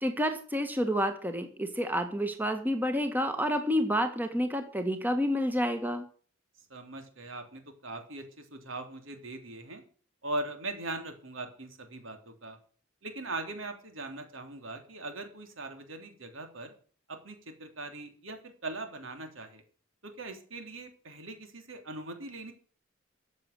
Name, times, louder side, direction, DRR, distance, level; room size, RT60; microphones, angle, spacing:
voice 1, 0.0-6.0, equal, 10° right, 7 dB, 1.6 m, -29 dB
voice 2, 6.7-9.8 10.2-12.6 13.0-16.7 17.1-19.6 20.0-22.5, right 2 dB, 75° right, 6 dB, 3.4 m, -40 dB
14.0 x 7.5 x 8.2 m, 0.43 s
head